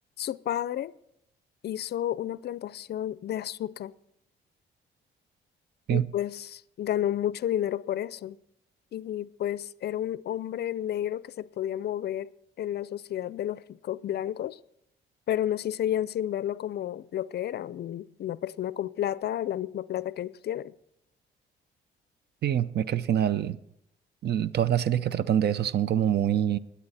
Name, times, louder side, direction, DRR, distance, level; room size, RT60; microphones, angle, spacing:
voice 1, 0.2-0.9 1.6-3.9 5.9-8.4 8.9-12.3 12.6-14.6 15.3-20.7, left 11 dB, 55° left, 0.4 m, -31 dB
voice 2, 22.4-23.6 24.2-26.6, right 10 dB, 55° right, 0.6 m, -25 dB
21.5 x 8.3 x 4.2 m
cardioid pair, 90°, 20 cm